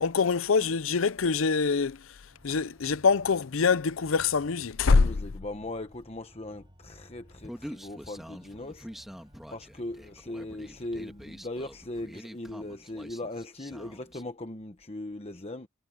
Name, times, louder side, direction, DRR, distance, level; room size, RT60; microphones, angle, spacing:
voice 1, 0.0-2.0 2.4-5.1, left 4 dB, 80° left, 0.6 m, -24 dB
Organ, 2.3-11.5, equal, 25° right, 6.6 m, -59 dB
voice 2, 4.8-8.9 9.5-15.7, left 1 dB, 30° left, 1.1 m, -39 dB
Human voice, 7.4-14.2, equal, ahead, 1.7 m, -46 dB
head